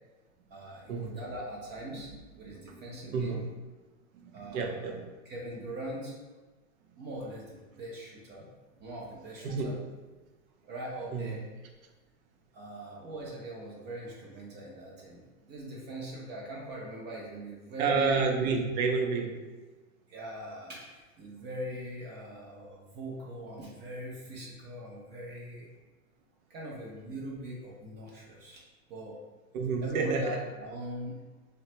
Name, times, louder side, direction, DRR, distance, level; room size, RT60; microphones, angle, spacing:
voice 1, 0.5-2.1 2.4-3.4 4.3-4.9 5.2-6.2 7.0-8.5 8.8-9.8 10.7-11.4 12.5-18.3 20.1-25.7 26.5-28.6 28.9-29.2 29.8-31.2, right 1 dB, 25° right, -3 dB, 0.4 m, -41 dB
voice 2, 2.7-3.5 4.1-5.1 9.4-9.7 11.1-11.3 17.8-19.4 29.5-30.4, right 4 dB, 80° right, 3 dB, 0.6 m, -30 dB
3.1 x 2.1 x 2.8 m, 1.2 s
hypercardioid pair, 120°, 41 cm